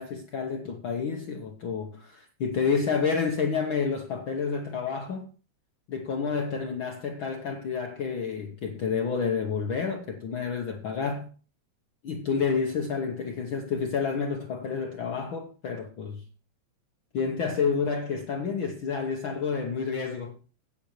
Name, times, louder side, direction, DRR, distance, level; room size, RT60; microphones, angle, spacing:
voice 1, 0.0-5.3 5.9-11.3 12.0-16.2 17.1-20.4, left 5 dB, 60° left, 1.3 m, -29 dB
17.0 x 7.8 x 3.1 m
omnidirectional pair, 3.4 m